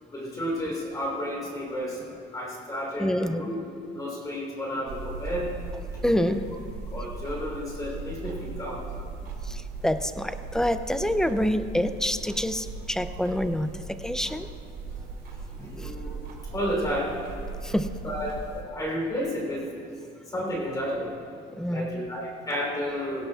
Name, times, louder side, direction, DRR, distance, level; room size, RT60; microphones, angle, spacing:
voice 1, 0.1-2.0 2.3-3.5 3.9-5.5 6.2-6.3 6.9-8.8 15.5-16.2 16.5-17.1 18.0-19.7 20.3-21.1 21.7-23.3, equal, 20° left, -3 dB, 3.1 m, -31 dB
voice 2, 3.0-3.6 6.0-6.4 9.8-14.5 15.8-15.9 17.6-17.9 21.6-22.1, left 1 dB, 5° left, 10 dB, 0.3 m, -27 dB
sound 1, 4.9-18.6, right 4 dB, 55° right, 2.6 m, -38 dB
17.5 x 16.5 x 2.3 m, 2.4 s
cardioid pair, 150°, 19 cm